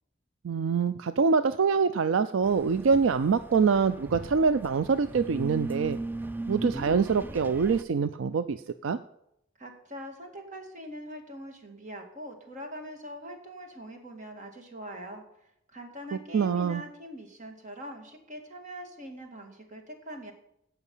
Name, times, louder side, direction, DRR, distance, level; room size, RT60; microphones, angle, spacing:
voice 1, 0.4-6.0 6.5-9.0 16.3-16.8, right 5 dB, 75° right, 12 dB, 0.4 m, -25 dB
sound 1, 2.4-7.8, right 2 dB, 10° right, 0.3 m, -37 dB
voice 2, 9.6-15.2 15.7-20.3, equal, 40° right, 3 dB, 2.1 m, -43 dB
16.5 x 5.8 x 5.5 m, 0.79 s
head